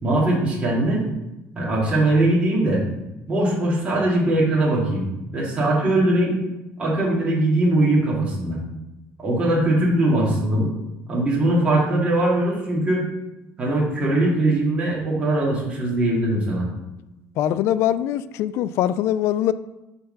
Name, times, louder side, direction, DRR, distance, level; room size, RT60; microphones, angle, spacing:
voice 1, 0.0-1.0 1.6-2.8 3.3-5.0 5.3-6.3 6.8-8.6 9.2-10.7 11.1-13.0 13.6-16.7, right 1 dB, 20° right, -5 dB, 2.3 m, -21 dB
voice 2, 17.4-19.5, left 11 dB, 55° left, 15 dB, 0.3 m, -22 dB
5.9 x 5.5 x 5.3 m, 0.98 s
cardioid pair, 170°, 5 cm